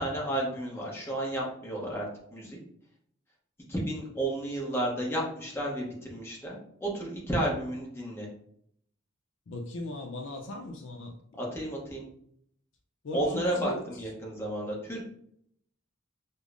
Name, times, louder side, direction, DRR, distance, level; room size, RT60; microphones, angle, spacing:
voice 1, 0.0-2.1 2.3-2.6 3.7-8.3 11.4-12.0 13.1-15.1, right 1 dB, 10° left, -3 dB, 0.8 m, -32 dB
voice 2, 9.5-11.1 13.0-13.9, left 1 dB, 60° left, 2 dB, 0.5 m, -38 dB
4.9 x 2.0 x 2.5 m, 0.70 s
head